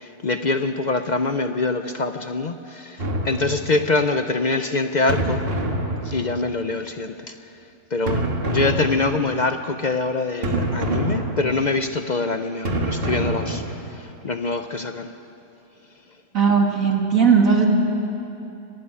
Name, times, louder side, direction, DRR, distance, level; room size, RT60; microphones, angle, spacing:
voice 1, 0.0-5.5 6.0-7.5 7.9-15.1, left 3 dB, 50° left, 8 dB, 0.5 m, -24 dB
sound 1, 3.0-4.0 5.1-6.7 8.1-9.5 10.4-11.9 12.7-14.1, right 1 dB, 40° right, 1.8 m, -26 dB
voice 2, 16.3-17.7, right 6 dB, 60° right, 1 dB, 2.6 m, -17 dB
25.0 x 12.0 x 9.7 m, 2.8 s
omnidirectional pair, 1.6 m